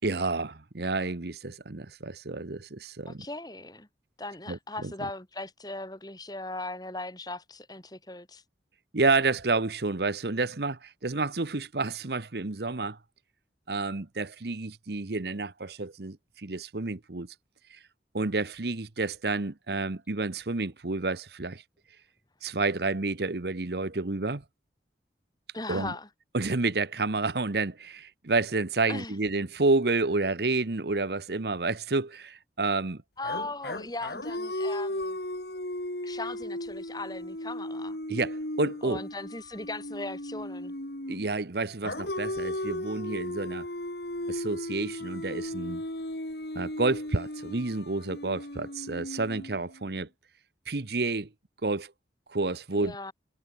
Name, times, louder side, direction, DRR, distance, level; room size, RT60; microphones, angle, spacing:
voice 1, 0.0-3.3 4.5-4.9 8.9-13.0 13.7-17.3 17.7-17.8 18.1-21.6 22.4-24.4 25.7-25.9 26.3-33.0 38.1-39.0 41.1-43.7 44.3-45.8 46.5-50.1 50.7-51.3 51.6-51.9 52.3-53.0, right 3 dB, 70° right, 1.1 m, -29 dB
voice 2, 3.1-3.9 4.2-8.4 25.5-26.1 28.9-29.1 33.2-35.2 36.0-38.0 38.8-40.7 52.7-53.1, left 2 dB, 20° left, 3.7 m, -38 dB
sound 1, 33.2-41.3 41.8-49.9, left 1 dB, 70° left, 4.4 m, -36 dB
head